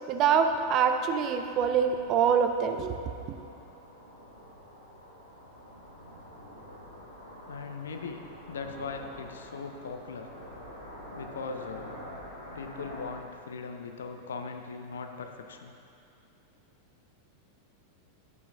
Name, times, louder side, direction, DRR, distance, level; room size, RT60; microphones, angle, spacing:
voice 1, 0.1-2.9, right 7 dB, 35° right, 7 dB, 0.5 m, -25 dB
sound 1, 1.5-13.1, equal, 80° left, 1.5 m, -47 dB
voice 2, 7.5-10.3 11.1-11.9 12.5-15.7, left 4 dB, 65° left, 5 dB, 0.6 m, -39 dB
10.5 x 8.7 x 2.4 m, 2.7 s
figure-of-eight pair, 90°, 0 cm